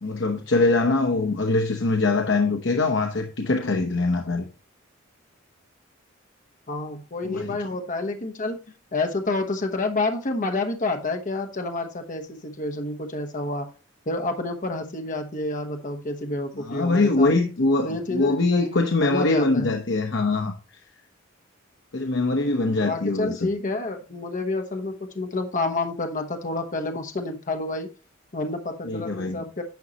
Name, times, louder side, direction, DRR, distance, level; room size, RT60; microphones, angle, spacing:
voice 1, 0.0-4.5 7.2-7.6 16.6-20.5 21.9-23.5 28.8-29.4, left 3 dB, 65° left, 0.9 m, -23 dB
voice 2, 6.7-8.6 8.9-13.7 14.1-17.3 17.8-19.7 22.8-27.9 28.3-29.6, left 2 dB, 40° left, 1.0 m, -29 dB
10.5 x 6.3 x 2.9 m
head